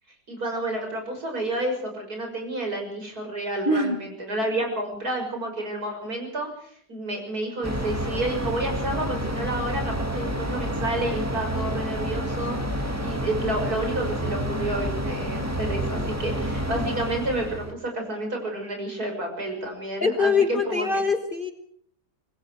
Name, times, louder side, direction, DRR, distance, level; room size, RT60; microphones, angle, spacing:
voice 1, 0.3-21.0, right 1 dB, 55° right, 3 dB, 6.7 m, -30 dB
voice 2, 3.7-4.0 20.0-21.5, left 4 dB, 30° left, 6 dB, 1.5 m, -23 dB
sound 1, 7.6-17.7, equal, 10° right, 2.0 m, -29 dB
26.5 x 20.0 x 4.8 m, 0.64 s
omnidirectional pair, 1.9 m